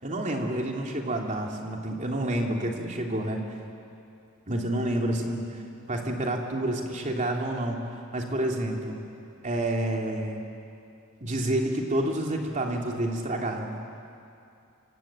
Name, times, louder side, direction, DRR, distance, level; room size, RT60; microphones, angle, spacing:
voice 1, 0.0-3.4 4.5-5.6 5.9-9.0 9.4-10.4 11.2-13.7, right 1 dB, 35° right, 1 dB, 3.2 m, -29 dB
26.0 x 25.5 x 9.0 m, 2.6 s
head